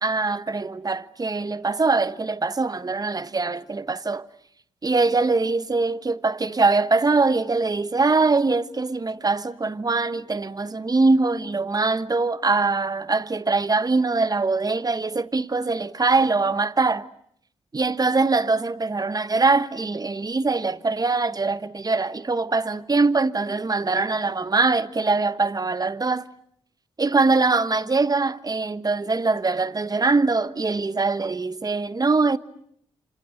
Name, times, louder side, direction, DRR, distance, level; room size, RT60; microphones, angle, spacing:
voice 1, 0.0-4.3 4.8-17.1 17.7-26.3 27.0-32.4, right 3 dB, 35° right, 1.3 m, -22 dB
28.0 x 26.0 x 7.9 m
supercardioid pair, 45°, 11 cm